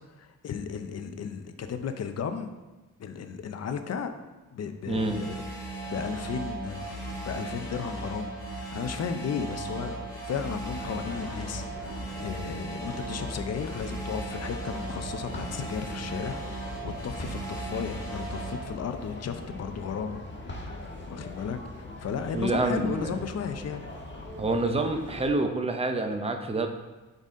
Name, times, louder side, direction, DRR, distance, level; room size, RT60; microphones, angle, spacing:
voice 1, 0.0-2.5 3.0-4.1 4.5-20.2 21.1-23.8, left 6 dB, 50° left, 8 dB, 0.6 m, -34 dB
sound 1, 4.9-18.6, right 2 dB, 10° left, 1.7 m, -37 dB
voice 2, 4.9-5.2 22.3-23.1 24.4-26.7, right 2 dB, 20° right, 5 dB, 0.6 m, -27 dB
sound 2, 10.6-25.3, left 2 dB, 35° left, 1.3 m, -41 dB
9.0 x 4.0 x 3.7 m, 1.2 s
wide cardioid pair, 135°, 32 cm